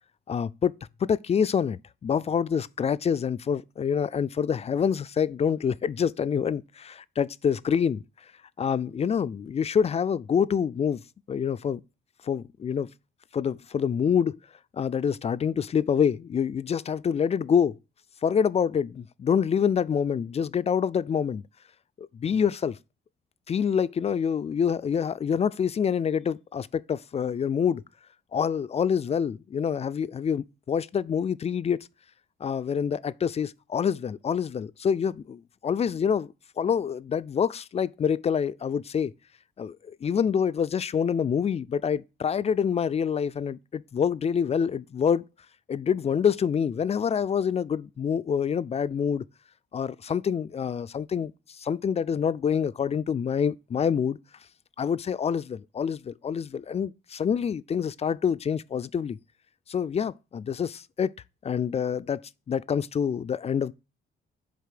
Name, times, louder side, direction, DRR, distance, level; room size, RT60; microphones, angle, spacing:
voice 1, 0.3-0.7 1.0-8.0 8.6-11.0 11.3-11.8 12.2-12.9 13.3-14.4 14.7-17.8 18.2-21.4 22.0-22.8 23.5-27.8 28.3-31.8 32.4-39.1 39.6-45.2 45.7-49.2 49.7-51.3 51.6-54.2 54.8-59.2 59.7-61.1 61.4-62.2 62.5-63.7, left 7 dB, 30° left, 0.4 m, -26 dB
6.9 x 3.9 x 6.5 m
cardioid pair, 90°, 20 cm